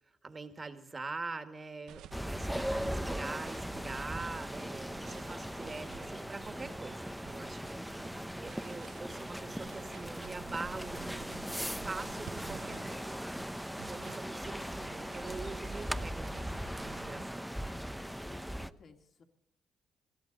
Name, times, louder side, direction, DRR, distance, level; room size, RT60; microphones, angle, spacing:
voice 1, 0.2-11.4 11.7-13.2 13.8-17.4, right 3 dB, 30° right, 7 dB, 1.9 m, -44 dB
sound 1, 1.9-17.3, right 10 dB, 85° right, 0.8 m, -53 dB
sound 2, 2.1-18.7, equal, ahead, 0.7 m, -39 dB
voice 2, 18.0-19.2, left 4 dB, 55° left, 3 dB, 2.7 m, -57 dB
21.5 x 14.5 x 4.1 m, 0.82 s
cardioid pair, 90°, 0 cm